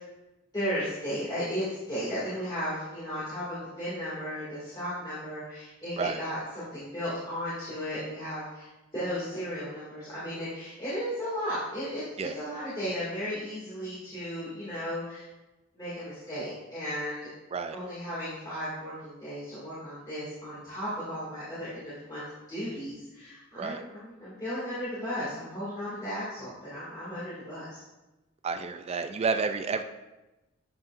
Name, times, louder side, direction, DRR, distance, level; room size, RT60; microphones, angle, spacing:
voice 1, 0.5-8.7 8.9-12.0 12.3-15.3 15.7-17.3 17.7-22.2 22.5-27.8, equal, 20° left, -11 dB, 2.2 m, -35 dB
voice 2, 28.4-29.8, right 5 dB, 30° right, 8 dB, 0.3 m, -30 dB
9.4 x 5.6 x 2.5 m, 1.0 s
head